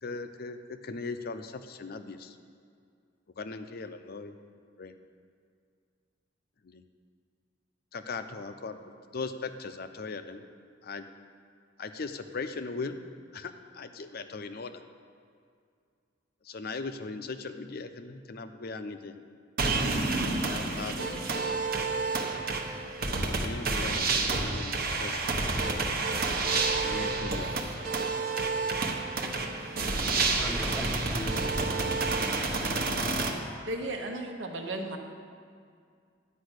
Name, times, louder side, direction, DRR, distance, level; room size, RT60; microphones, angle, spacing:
voice 1, 0.0-2.4 3.4-4.3 4.8-4.9 6.6-6.8 7.9-10.4 10.8-11.0 11.8-13.0 13.3-14.8 16.4-19.1 20.0-21.3 22.6-22.8 23.1-25.2 26.8-27.6, left 4 dB, 55° left, 9 dB, 0.6 m, -39 dB
sound 1, 19.6-33.3, right 3 dB, 55° right, 1.0 m, -29 dB
voice 2, 30.3-32.0 32.5-32.8 33.2-33.9, equal, 5° left, -1 dB, 0.7 m, -43 dB
voice 3, 33.7-35.0, right 1 dB, 80° right, 3 dB, 1.1 m, -34 dB
10.5 x 5.5 x 8.0 m, 2.2 s
head